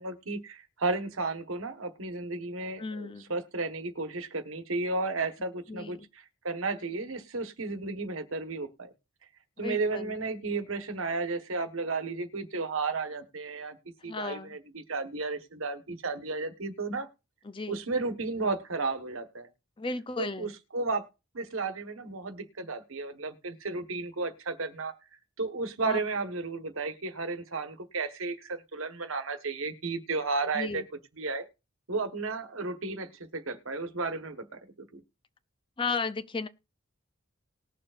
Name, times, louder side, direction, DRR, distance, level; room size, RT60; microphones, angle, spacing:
voice 1, 0.0-8.9 9.6-13.8 14.0-17.1 17.7-19.5 20.2-21.0 21.3-24.9 25.4-30.8 31.2-31.5 31.9-35.0, right 3 dB, 85° right, 1.4 m, -33 dB
voice 2, 2.8-3.3 5.7-6.1 9.6-10.2 14.0-14.6 17.4-17.8 19.8-20.5 25.8-26.0 30.5-30.9 35.8-36.5, left 4 dB, 25° left, 0.5 m, -35 dB
19.5 x 6.7 x 2.5 m
head